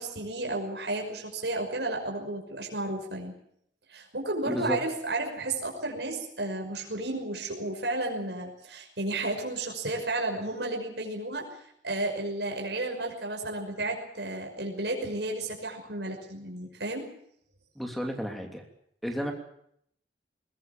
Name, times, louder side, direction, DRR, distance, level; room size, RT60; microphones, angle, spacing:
voice 1, 0.0-3.3 3.9-11.5 11.8-17.1, right 2 dB, 70° right, 1 dB, 5.9 m, -32 dB
voice 2, 4.4-4.8 17.8-18.6 19.0-19.3, equal, ahead, 3 dB, 3.0 m, -32 dB
21.5 x 20.5 x 7.4 m, 0.70 s
head